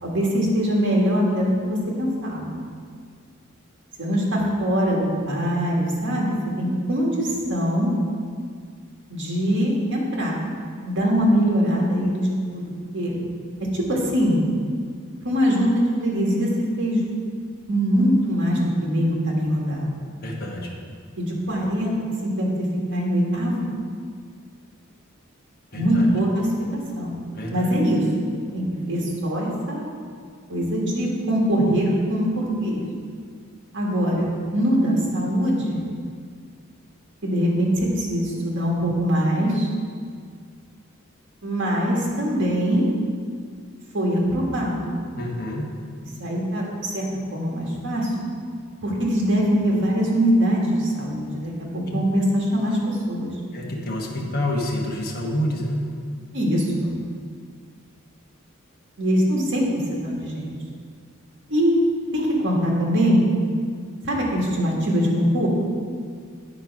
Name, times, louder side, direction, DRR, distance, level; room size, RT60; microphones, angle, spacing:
voice 1, 0.0-2.6 4.0-7.9 9.1-10.4 10.8-13.2 13.6-14.4 15.2-16.5 16.8-17.0 17.7-19.9 21.2-21.9 22.2-22.5 22.9-23.6 25.7-26.5 26.9-27.1 27.5-28.0 28.5-29.9 30.5-32.8 33.7-35.8 37.2-39.7 41.4-42.9 43.9-44.9 46.2-47.0 47.3-48.1 48.8-53.3 56.3-56.9 59.0-60.5 61.5-61.8 62.1-63.2 64.0-65.5, equal, 60° right, -2 dB, 1.7 m, -22 dB
voice 2, 20.2-20.7 25.7-26.1 27.3-27.7 45.2-45.7 53.5-55.9, left 1 dB, 50° left, -2 dB, 1.1 m, -28 dB
8.9 x 4.5 x 5.9 m, 2.1 s
head